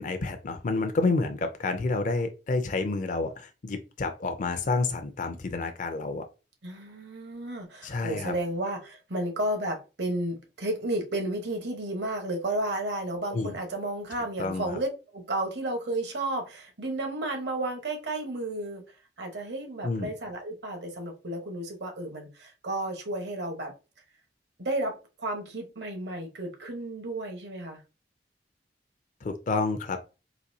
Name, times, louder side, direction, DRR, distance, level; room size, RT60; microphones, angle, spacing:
voice 1, 0.0-6.2 7.8-8.3 13.3-13.5 14.4-14.8 19.8-20.1 29.2-30.0, left 3 dB, 45° left, 0.4 m, -29 dB
voice 2, 6.6-18.8 19.2-23.7 24.6-27.8, right 1 dB, 75° right, 1.1 m, -32 dB
4.0 x 2.6 x 2.7 m
head